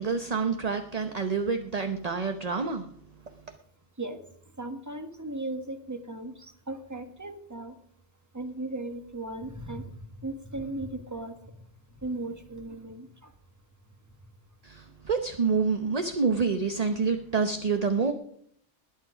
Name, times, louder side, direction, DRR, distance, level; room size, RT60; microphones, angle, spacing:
voice 1, 0.0-2.9 14.6-18.1, right 5 dB, 35° right, 7 dB, 0.9 m, -27 dB
voice 2, 4.6-6.3 6.7-7.7 8.3-9.9 10.2-11.3 12.0-13.1, right 2 dB, 15° right, 7 dB, 1.4 m, -36 dB
20.5 x 8.3 x 4.9 m, 0.64 s
omnidirectional pair, 1.3 m